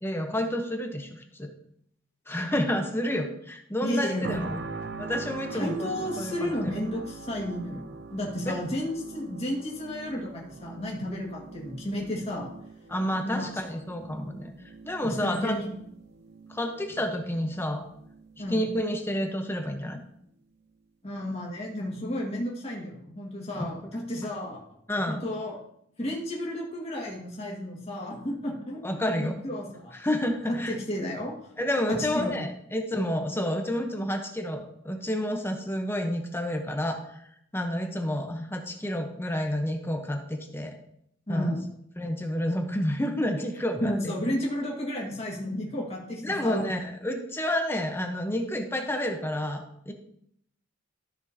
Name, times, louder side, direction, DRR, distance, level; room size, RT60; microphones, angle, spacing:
voice 1, 0.0-1.5 2.3-4.6 5.0-5.9 6.2-6.8 8.5-8.6 12.9-14.5 14.8-15.6 16.5-17.8 18.5-20.0 23.6-23.9 24.9-25.2 28.8-29.4 30.0-30.7 31.6-37.0 37.5-40.7 41.3-41.6 42.0-44.1 46.2-49.9, left 1 dB, 10° left, 4 dB, 0.8 m, -29 dB
voice 2, 3.8-4.5 5.5-12.5 13.2-13.5 15.0-15.7 18.4-18.6 21.0-24.6 25.1-25.6 26.0-29.9 30.5-31.4 31.9-32.3 41.3-41.6 43.8-46.6, left 1 dB, 30° left, -2 dB, 1.9 m, -32 dB
sound 1, 4.2-19.2 19.7-19.9, right 4 dB, 55° right, 0.8 m, -43 dB
13.5 x 6.3 x 2.8 m, 0.72 s
head